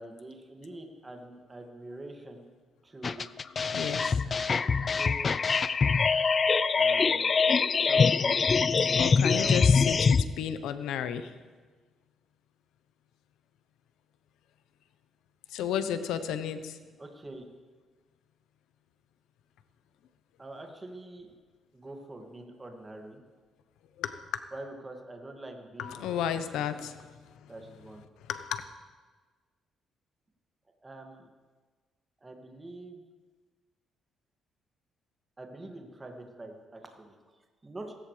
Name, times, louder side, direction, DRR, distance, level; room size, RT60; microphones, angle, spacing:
voice 1, 0.0-2.4 2.8-3.3 4.6-5.3 6.7-7.3 7.7-8.4 9.2-9.6 9.9-10.0 17.0-17.5 20.4-21.3 21.7-23.2 24.5-26.7 27.5-28.0 30.8-31.3 32.2-33.0 35.4-37.1 37.6-37.9, right 2 dB, 20° right, 2 dB, 2.1 m, -45 dB
sound 1, 3.0-10.2, left 5 dB, 40° left, 0.4 m, -24 dB
voice 2, 3.7-4.2 8.9-11.3 15.5-16.8 24.0-24.3 25.8-27.0 27.4-27.5 28.3-28.6, left 9 dB, 90° left, 10 dB, 0.9 m, -33 dB
17.5 x 16.0 x 3.4 m, 1.4 s
cardioid pair, 90°, 0 cm